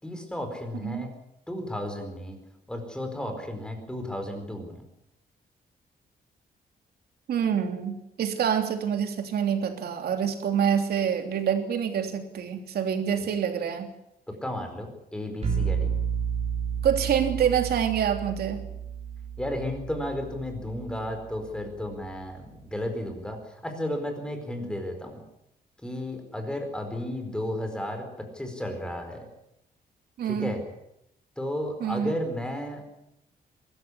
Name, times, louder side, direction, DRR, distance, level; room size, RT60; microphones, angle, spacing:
voice 1, 0.0-1.1 1.5-2.4 2.7-4.8 13.2-13.3 14.3-15.9 19.4-25.2 25.8-29.3 30.2-30.6 31.4-32.8, left 1 dB, 5° left, 5 dB, 4.6 m, -33 dB
voice 2, 0.7-1.1 7.3-13.9 16.8-18.6 30.2-30.5 31.8-32.1, right 8 dB, 80° right, 6 dB, 3.3 m, -26 dB
sound 1, 15.4-21.2, right 7 dB, 40° right, 4.1 m, -31 dB
23.0 x 14.5 x 9.8 m, 0.82 s
wide cardioid pair, 170°, 16 cm